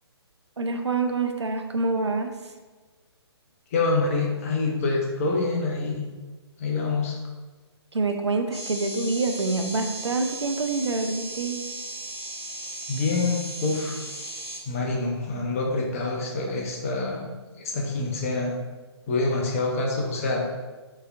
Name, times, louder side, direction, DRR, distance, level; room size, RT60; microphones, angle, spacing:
voice 1, 0.6-2.3 7.9-11.6, right 3 dB, 80° right, 6 dB, 0.4 m, -26 dB
voice 2, 3.7-6.0 6.6-7.2 12.9-14.0 14.7-18.5 19.1-20.5, left 3 dB, 30° left, 0 dB, 0.6 m, -26 dB
sound 1, 8.5-14.6, right 2 dB, ahead, 0.8 m, -36 dB
3.8 x 2.7 x 2.4 m, 1.3 s
figure-of-eight pair, 135°, 14 cm